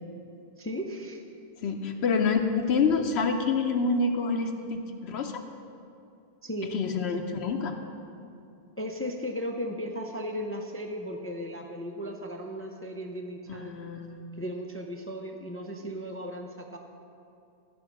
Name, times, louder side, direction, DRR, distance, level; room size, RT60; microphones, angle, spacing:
voice 1, 0.6-1.2 6.4-6.7 8.8-13.8 14.4-16.8, equal, 20° left, 3 dB, 0.3 m, -36 dB
voice 2, 1.6-5.4 6.6-7.8 13.5-14.4, left 4 dB, 75° left, 4 dB, 0.9 m, -27 dB
13.0 x 5.1 x 5.8 m, 2.7 s
omnidirectional pair, 1.1 m